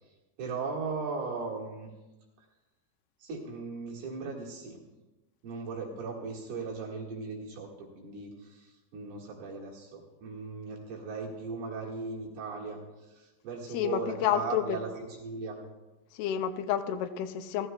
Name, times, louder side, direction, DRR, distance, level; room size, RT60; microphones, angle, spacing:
voice 1, 0.4-1.9 3.2-4.8 5.4-12.8 13.1-15.6, right 4 dB, 75° right, -2 dB, 3.7 m, -38 dB
voice 2, 13.7-14.8 16.2-17.7, left 10 dB, 85° left, 7 dB, 2.6 m, -30 dB
18.0 x 14.0 x 2.3 m, 1.1 s
omnidirectional pair, 4.5 m